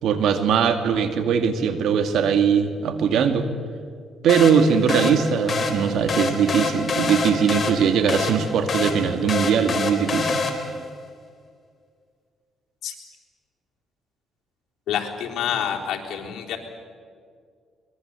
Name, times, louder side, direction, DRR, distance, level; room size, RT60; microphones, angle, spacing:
voice 1, 0.0-3.5 4.2-10.4, right 7 dB, 75° right, 8 dB, 2.2 m, -20 dB
sound 1, 4.3-10.9, left 4 dB, 40° left, 3.9 m, -27 dB
voice 2, 14.9-16.6, left 9 dB, 80° left, 0 dB, 3.7 m, -27 dB
23.5 x 21.5 x 8.3 m, 2.1 s
cardioid pair, 90°, 0 cm